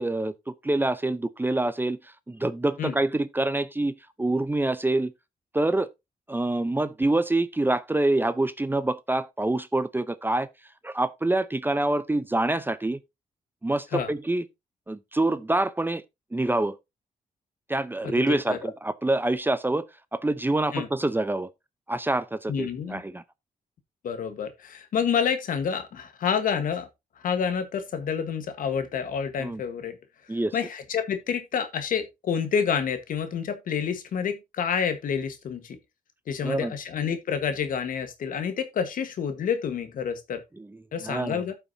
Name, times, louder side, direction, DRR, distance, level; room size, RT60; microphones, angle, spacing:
voice 1, 0.0-5.1 5.5-5.9 6.3-10.5 10.8-13.0 13.6-14.4 14.9-16.0 16.3-16.8 17.7-19.8 20.1-21.5 21.9-23.2 29.4-29.6 30.3-30.5 36.4-36.7 40.6-40.7 41.0-41.4, right 2 dB, 15° right, 0.6 m, -26 dB
voice 2, 18.0-18.7 20.7-20.9 22.5-23.0 24.0-26.9 27.2-30.0 30.5-35.8 36.3-40.4 40.9-41.5, left 7 dB, 75° left, 1.3 m, -28 dB
14.0 x 5.8 x 2.7 m
cardioid pair, 80°, 14 cm